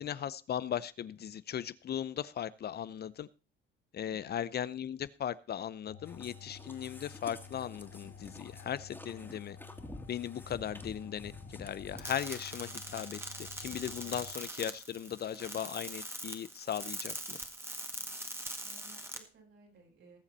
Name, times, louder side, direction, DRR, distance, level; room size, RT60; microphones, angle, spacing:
voice 1, 0.0-3.3 3.9-9.6 10.1-17.4, left 9 dB, 55° left, 18 dB, 0.7 m, -38 dB
voice 2, 4.0-4.4 9.1-9.4 10.4-10.8 14.0-14.3 17.9-20.2, right 3 dB, 70° right, -2 dB, 7.9 m, -60 dB
sound 1, 5.9-14.4, left 6 dB, 75° left, 1.2 m, -51 dB
sound 2, 6.0-14.4 14.7-14.8 15.3-15.4 15.6-15.7, left 1 dB, 10° left, 2.5 m, -51 dB
sound 3, 12.0-19.2, right 1 dB, 10° right, 1.9 m, -42 dB
19.5 x 7.2 x 4.2 m, 0.32 s
cardioid pair, 90°, 20 cm